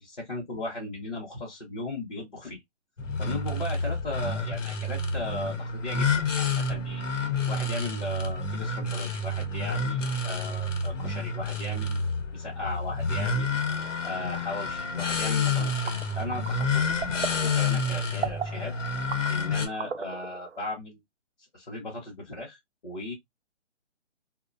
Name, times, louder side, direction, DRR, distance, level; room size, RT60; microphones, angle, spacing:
voice 1, 0.0-2.6 3.2-7.0 7.5-12.0 12.3-13.6 14.0-17.0 17.2-18.7 19.3-21.0 21.5-23.1, left 2 dB, 40° left, 0.7 m, -37 dB
sound 1, 3.0-19.7, left 3 dB, 85° left, 0.8 m, -29 dB
sound 2, 15.6-20.6, right 7 dB, 65° right, 0.5 m, -38 dB
2.6 x 2.1 x 2.4 m
hypercardioid pair, 175°, 37 cm